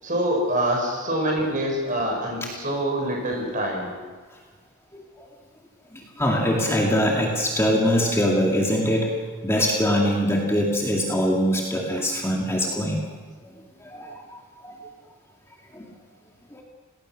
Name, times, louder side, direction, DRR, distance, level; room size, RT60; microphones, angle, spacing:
voice 1, 0.0-3.9, right 1 dB, 35° right, 0 dB, 7.0 m, -25 dB
voice 2, 5.9-9.1 9.4-13.0 13.8-14.8 15.7-15.9 16.5-16.6, equal, 10° left, -2 dB, 2.3 m, -23 dB
29.0 x 19.5 x 6.4 m, 1.5 s
head